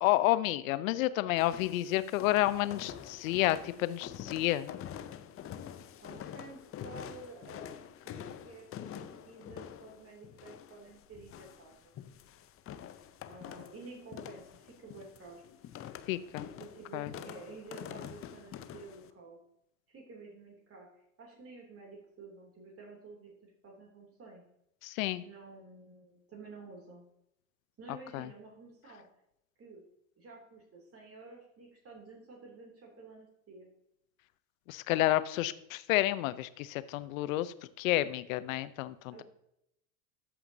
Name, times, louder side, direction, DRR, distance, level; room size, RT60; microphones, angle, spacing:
voice 1, 0.0-4.7 16.1-16.5 16.9-17.1 24.8-25.2 28.1-28.3 34.7-39.2, left 15 dB, 75° left, 15 dB, 0.6 m, -30 dB
sound 1, 1.4-19.1, left 9 dB, 35° left, 0.6 m, -46 dB
voice 2, 5.6-11.9 13.2-15.4 16.6-19.4 19.9-24.4 25.2-27.1 27.8-29.0 29.6-29.8 30.2-33.7 39.1-39.2, right 3 dB, 35° right, -1 dB, 2.9 m, -51 dB
13.5 x 5.8 x 2.7 m, 0.79 s
hypercardioid pair, 85°, 41 cm